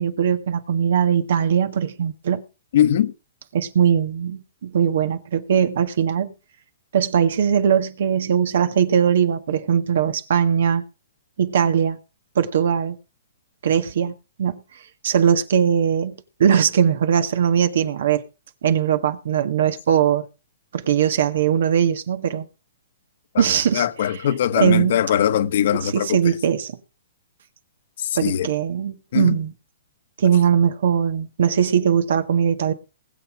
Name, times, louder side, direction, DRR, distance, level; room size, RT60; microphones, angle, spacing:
voice 1, 0.0-2.4 3.5-6.3 6.9-10.8 11.4-12.0 12.4-13.0 13.6-14.1 14.4-14.6 15.0-18.2 18.6-20.3 20.7-22.5 23.4-23.9 24.6-25.0 25.8-26.8 28.1-29.5 30.2-32.7, right 8 dB, 65° right, 1.7 m, -20 dB
voice 2, 2.7-3.1 23.3-23.4 23.7-26.3 28.0-28.5 29.1-29.4, left 10 dB, 60° left, 1.4 m, -21 dB
20.0 x 7.5 x 5.0 m
hypercardioid pair, 140°, 0 cm